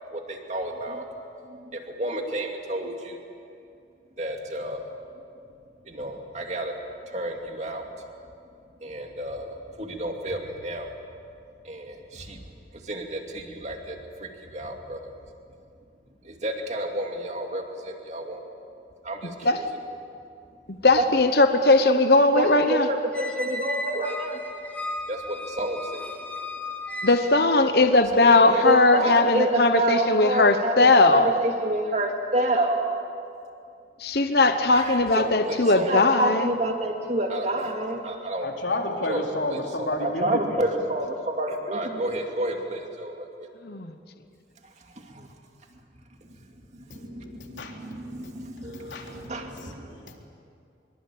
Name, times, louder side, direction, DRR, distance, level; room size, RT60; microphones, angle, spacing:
voice 1, 0.1-1.1 1.5-3.2 4.2-4.9 5.9-6.7 7.1-7.8 8.8-10.9 11.6-12.4 12.7-15.1 16.2-18.4 19.0-19.6 21.0-21.1 22.4-24.4 25.1-26.1 28.1-32.9 34.7-38.5 39.1-39.3 39.5-43.3 45.0-45.3 46.7-50.0, right 1 dB, 40° right, 3 dB, 2.6 m, -29 dB
voice 2, 20.8-22.9 27.0-31.3 34.0-36.5 43.6-43.9, left 2 dB, 60° left, 8 dB, 1.1 m, -19 dB
Squeak, 23.1-27.6, left 1 dB, 10° left, 1.4 m, -35 dB
voice 3, 38.4-40.6 46.9-50.2, left 1 dB, 90° left, 1 dB, 3.7 m, -33 dB
24.5 x 23.5 x 8.7 m, 2.5 s
head